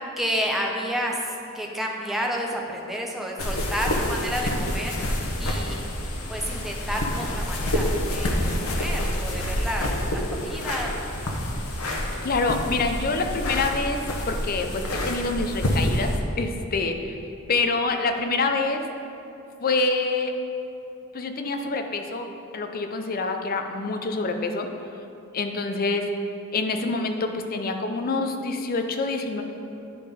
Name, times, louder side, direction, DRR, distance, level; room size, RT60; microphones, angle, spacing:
voice 1, 0.2-4.9 5.4-10.9, equal, ahead, -1 dB, 0.7 m, -30 dB
sound 1, 3.4-16.2, left 1 dB, 85° left, 1.0 m, -27 dB
voice 2, 12.2-14.0 14.3-17.1 17.5-18.8 19.6-20.3 21.1-22.3 22.5-24.7 25.3-26.1 26.5-29.4, left 3 dB, 45° left, 5 dB, 0.6 m, -26 dB
10.5 x 3.7 x 5.2 m, 2.8 s
head